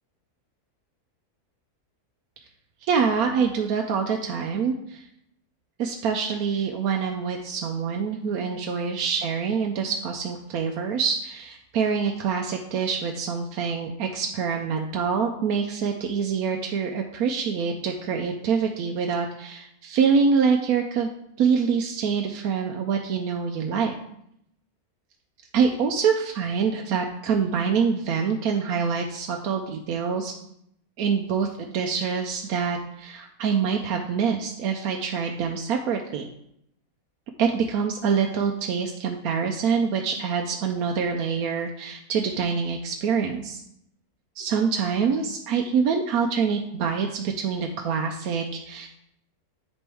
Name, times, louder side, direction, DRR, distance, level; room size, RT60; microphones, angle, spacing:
voice 1, 2.8-5.0 5.8-21.1 21.4-23.9 25.5-30.3 31.0-36.3 37.4-43.6 44.4-48.9, right 6 dB, 75° right, 2 dB, 1.1 m, -25 dB
10.0 x 4.3 x 3.5 m, 0.75 s
omnidirectional pair, 1.6 m